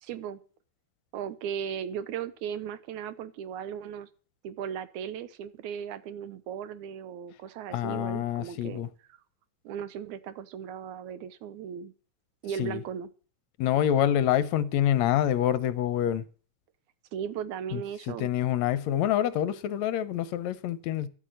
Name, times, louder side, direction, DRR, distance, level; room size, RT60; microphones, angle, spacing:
voice 1, 0.0-0.4 1.1-4.1 4.4-9.2 9.6-11.9 12.4-13.1 17.1-18.3, right 8 dB, 80° right, 2.2 m, -37 dB
voice 2, 7.7-8.9 12.6-12.8 13.6-16.2 17.7-17.8 18.1-21.1, left 11 dB, 75° left, 1.9 m, -26 dB
12.0 x 8.3 x 7.8 m
omnidirectional pair, 3.4 m